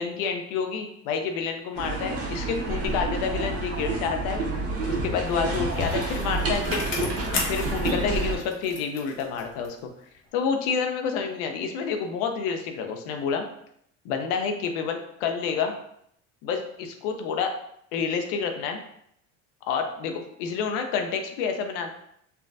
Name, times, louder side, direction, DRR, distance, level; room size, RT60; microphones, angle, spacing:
voice 1, 0.0-4.4 4.9-7.1 7.5-9.9 10.3-13.4 14.0-15.7 16.4-17.5 17.9-18.8 19.7-21.9, left 6 dB, 70° left, 5 dB, 0.6 m, -29 dB
sound 1, 1.7-8.4, right 2 dB, 35° right, 0.8 m, -29 dB
Bicycle, 5.0-9.9 10.3-10.4, left 3 dB, 30° left, 0.8 m, -36 dB
3.3 x 2.2 x 2.5 m, 0.72 s
supercardioid pair, 90°, 39 cm